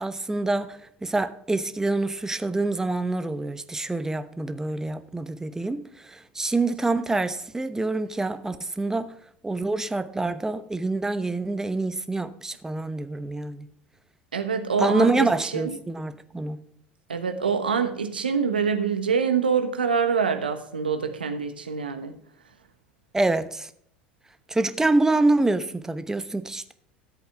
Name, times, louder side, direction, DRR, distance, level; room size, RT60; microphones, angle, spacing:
voice 1, 0.0-9.1 9.4-13.7 14.8-16.6 23.1-23.7 24.5-26.7, right 2 dB, 10° right, 0.9 m, -26 dB
voice 2, 14.3-15.8 17.1-22.1, right 6 dB, 85° right, 1.1 m, -25 dB
13.5 x 8.2 x 3.5 m
figure-of-eight pair, 70°, 5 cm